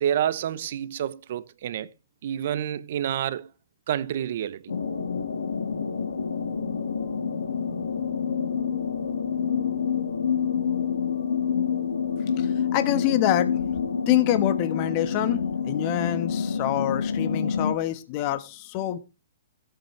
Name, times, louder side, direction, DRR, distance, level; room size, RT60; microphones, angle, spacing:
voice 1, 0.0-1.9 2.2-3.5 3.9-4.6, right 10 dB, 55° right, 0.9 m, -28 dB
sound 1, 4.7-17.7, left 6 dB, 85° left, 2.0 m, -27 dB
voice 2, 12.4-13.5 14.1-19.0, left 13 dB, 40° left, 1.4 m, -26 dB
16.5 x 8.6 x 3.4 m
hypercardioid pair, 130°, 0 cm